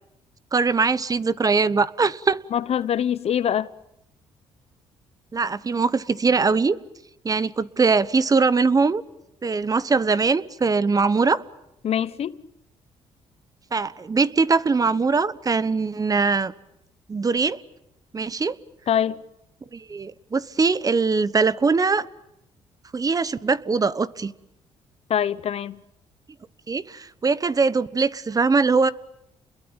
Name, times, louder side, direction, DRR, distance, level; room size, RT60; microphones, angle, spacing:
voice 1, 0.5-2.4 5.3-6.8 7.2-9.0 9.4-11.4 13.7-16.5 17.1-17.6 18.1-18.5 19.7-22.0 22.9-24.3 26.7-28.9, right 4 dB, 30° right, 1.1 m, -21 dB
voice 2, 2.5-3.7 11.8-12.4 18.9-19.2 25.1-25.8, left 9 dB, 60° left, 1.1 m, -24 dB
29.5 x 22.0 x 9.0 m
cardioid pair, 80°, 12 cm